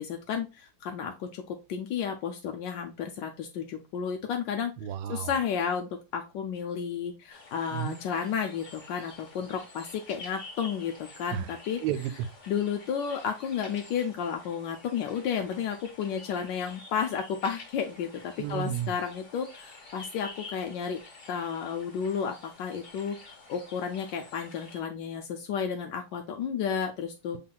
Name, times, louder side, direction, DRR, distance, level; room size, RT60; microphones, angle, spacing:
voice 1, 0.0-4.7 5.1-11.8 12.5-18.1 18.5-21.0 21.3-27.4, left 7 dB, 75° left, 1.0 m, -32 dB
voice 2, 4.8-5.3 7.7-8.0 11.3-11.5 11.8-12.3 18.4-18.9, right 10 dB, 80° right, 1.4 m, -32 dB
sound 1, 7.3-24.8, left 3 dB, 35° left, 1.7 m, -49 dB
5.8 x 3.7 x 2.3 m
omnidirectional pair, 2.4 m